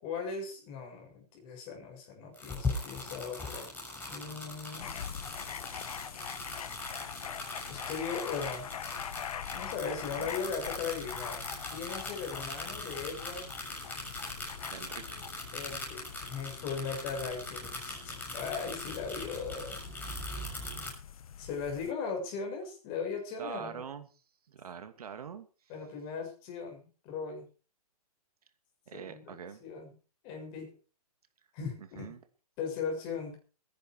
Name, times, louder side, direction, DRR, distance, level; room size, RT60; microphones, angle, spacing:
voice 1, 0.0-3.7 3.9-5.3 7.7-8.7 9.5-11.4 11.7-13.5 15.5-19.7 21.4-23.8 25.7-27.5 28.9-29.3 29.6-29.9 30.2-30.7 31.5-32.1 32.6-33.4, left 5 dB, 30° left, 2 dB, 7.0 m, -38 dB
sound 1, 2.3-20.9, left 2 dB, 10° left, 7.1 m, -41 dB
sound 2, 4.8-21.9, left 8 dB, 65° left, 1.3 m, -44 dB
voice 2, 14.7-15.5 23.4-24.1 24.5-25.5 28.9-29.6 31.9-32.2, right 7 dB, 70° right, 8 dB, 2.7 m, -44 dB
22.0 x 10.5 x 4.9 m, 0.38 s
hypercardioid pair, 155°, 20 cm